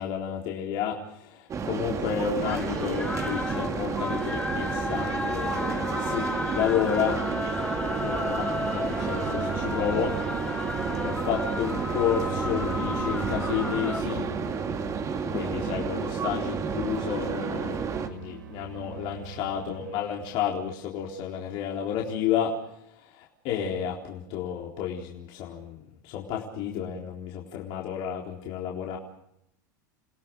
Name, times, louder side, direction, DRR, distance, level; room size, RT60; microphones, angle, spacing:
voice 1, 0.0-6.2 6.5-7.2 8.0-10.1 11.0-14.3 15.3-22.5 23.1-29.0, left 8 dB, 55° left, -1 dB, 4.0 m, -31 dB
sound 1, 1.5-18.1, right 6 dB, 30° right, 2.5 m, -31 dB
sound 2, 1.9-14.0, left 2 dB, 10° left, 1.4 m, -33 dB
sound 3, 8.9-20.5, right 7 dB, 85° right, 3.2 m, -42 dB
30.0 x 17.5 x 6.5 m, 0.76 s
hypercardioid pair, 100°, 10 cm